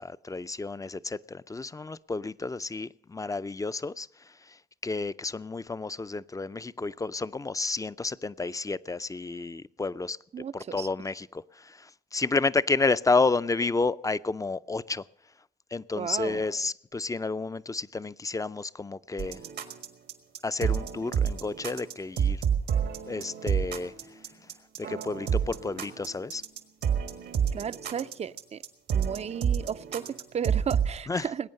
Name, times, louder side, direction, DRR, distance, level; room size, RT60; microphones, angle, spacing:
voice 1, 0.0-4.1 4.8-10.2 10.5-11.4 12.1-15.0 15.7-19.4 20.4-22.4 23.1-23.9 24.8-26.4 31.1-31.3, left 3 dB, 20° left, 0.4 m, -30 dB
voice 2, 10.3-10.9 16.0-16.4 27.5-28.6 28.9-31.5, right 8 dB, 40° right, 0.4 m, -34 dB
sound 1, 19.2-31.0, right 8 dB, 90° right, 1.6 m, -29 dB
20.0 x 8.9 x 6.4 m
cardioid pair, 65°, 17 cm